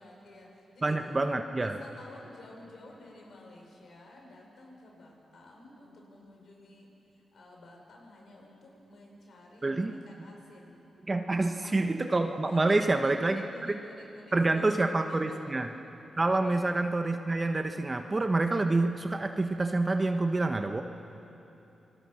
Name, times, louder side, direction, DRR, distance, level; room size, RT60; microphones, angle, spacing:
voice 1, 0.0-1.2 1.5-6.9 7.3-10.8 11.6-11.8 12.4-15.6 16.4-16.6, left 2 dB, 70° left, 0 dB, 5.8 m, -51 dB
voice 2, 0.8-1.8 9.6-9.9 11.1-13.8 14.3-15.7 16.2-20.8, right 2 dB, 35° right, 6 dB, 1.3 m, -27 dB
29.0 x 20.0 x 6.5 m, 3.0 s
supercardioid pair, 40°, 0 cm